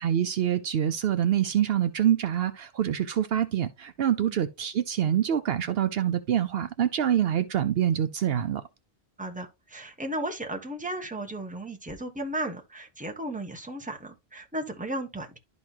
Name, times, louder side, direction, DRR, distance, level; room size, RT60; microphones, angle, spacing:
voice 1, 0.0-8.6, right 10 dB, 70° right, 0.8 m, -26 dB
voice 2, 9.2-15.4, right 1 dB, 10° right, 1.2 m, -35 dB
11.5 x 4.0 x 2.8 m
omnidirectional pair, 1.1 m